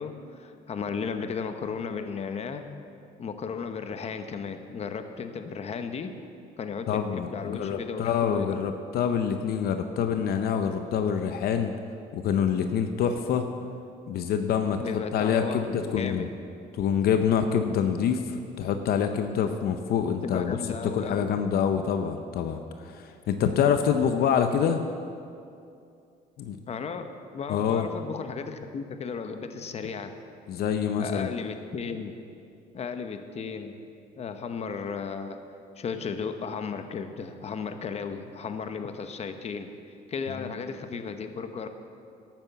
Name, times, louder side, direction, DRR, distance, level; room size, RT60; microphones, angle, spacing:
voice 1, 0.0-2.6 3.2-6.1 6.6-8.5 14.8-16.2 20.2-21.2 26.7-30.2 31.0-32.1 32.7-33.8 34.2-35.4 35.8-39.7 40.1-41.7, left 5 dB, 40° left, 8 dB, 0.9 m, -35 dB
voice 2, 6.9-11.7 12.1-13.5 14.1-16.3 16.7-20.6 20.8-24.8 26.4-26.6 27.5-27.9 30.5-31.3 40.4-40.5, left 7 dB, 70° left, 7 dB, 0.7 m, -26 dB
12.0 x 8.9 x 7.0 m, 2.5 s
cardioid pair, 110°, 17 cm